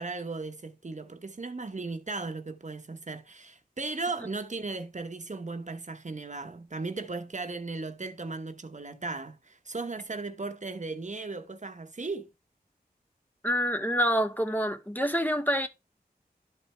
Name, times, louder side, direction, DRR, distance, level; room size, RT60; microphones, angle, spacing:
voice 1, 0.0-12.3, right 3 dB, 45° right, 0.9 m, -36 dB
voice 2, 13.4-15.7, equal, 10° left, 0.8 m, -27 dB
12.0 x 4.3 x 3.3 m
wide cardioid pair, 60°, 17 cm